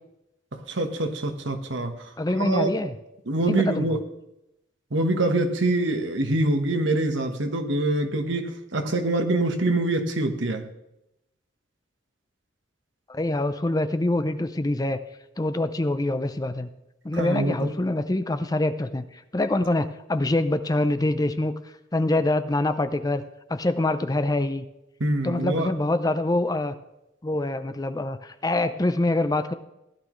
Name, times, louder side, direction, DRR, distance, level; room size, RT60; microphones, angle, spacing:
voice 1, 0.5-1.9 2.3-2.7 3.3-4.0 4.9-10.6 17.1-17.7 25.0-25.7, right 2 dB, 70° right, 6 dB, 1.3 m, -25 dB
voice 2, 2.2-3.0 3.5-4.0 13.1-15.0 15.4-16.7 17.0-21.5 21.9-23.2 23.5-24.6 25.2-26.7 27.2-29.5, left 2 dB, 20° left, 11 dB, 0.5 m, -25 dB
16.0 x 11.0 x 3.1 m, 0.87 s
head